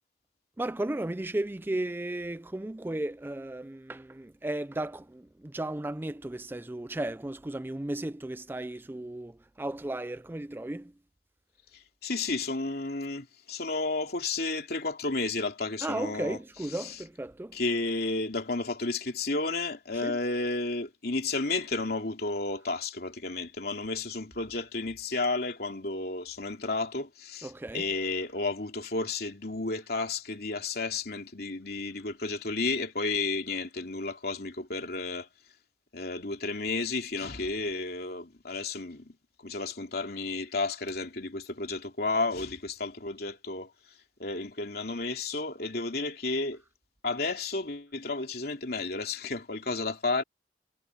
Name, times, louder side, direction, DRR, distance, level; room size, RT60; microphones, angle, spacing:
voice 1, 0.6-10.9 15.8-17.6 20.0-20.2 27.4-27.9, right 1 dB, 10° right, 0.4 m, -35 dB
voice 2, 12.0-16.4 16.7-17.0 17.5-35.3 35.9-39.1 39.4-43.7 44.2-46.6 47.0-50.2, left 3 dB, 55° left, 3.1 m, -32 dB
head